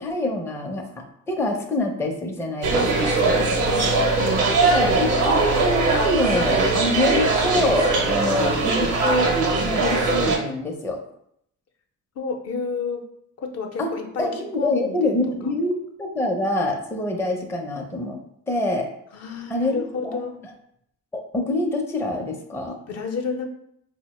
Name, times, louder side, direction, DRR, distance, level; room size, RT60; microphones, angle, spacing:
voice 1, 0.0-3.2 4.6-9.3 9.6-11.0 13.8-13.9 14.2-18.2 18.5-18.9 19.5-20.2 21.1-22.8, left 1 dB, 10° left, 2 dB, 0.5 m, -25 dB
sound 1, 2.6-10.4, right 3 dB, 85° right, 0.8 m, -21 dB
voice 2, 3.2-4.0 12.2-13.1 13.4-15.1 15.4-15.5 19.1-20.4 22.9-23.5, left 5 dB, 55° left, 3 dB, 0.6 m, -31 dB
4.1 x 2.1 x 3.0 m, 0.71 s
cardioid pair, 90°, 30 cm